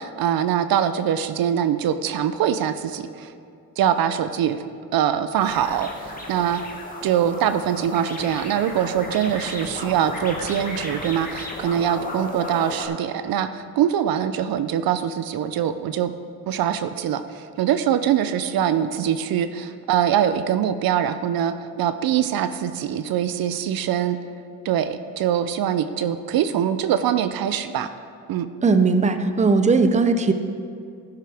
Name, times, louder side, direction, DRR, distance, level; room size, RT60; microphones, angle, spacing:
voice 1, 0.0-3.3 3.8-4.6 4.9-6.6 7.0-16.1 16.5-24.2 24.6-27.9 28.3-28.5, right 9 dB, 65° right, 11 dB, 0.6 m, -23 dB
sound 1, 5.4-12.8, left 2 dB, 20° left, 1.9 m, -34 dB
voice 2, 28.6-30.3, right 4 dB, 20° right, 9 dB, 0.6 m, -18 dB
12.5 x 10.5 x 3.5 m, 2.4 s
cardioid pair, 90°, 38 cm